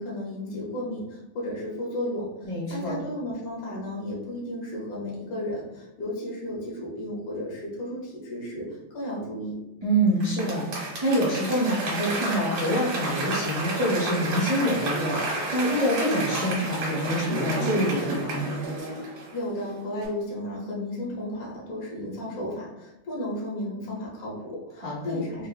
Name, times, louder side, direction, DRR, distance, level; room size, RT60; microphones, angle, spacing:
voice 1, 0.0-8.7 8.9-9.6 19.3-25.5, left 1 dB, 55° left, -4 dB, 1.2 m, -33 dB
voice 2, 2.4-3.0 9.8-18.5 24.8-25.2, equal, 40° right, -9 dB, 0.4 m, -26 dB
Applause / Crowd, 10.2-19.6 20.0-20.1, right 2 dB, 85° right, 1.8 m, -31 dB
4.5 x 2.0 x 2.3 m, 0.98 s
omnidirectional pair, 2.2 m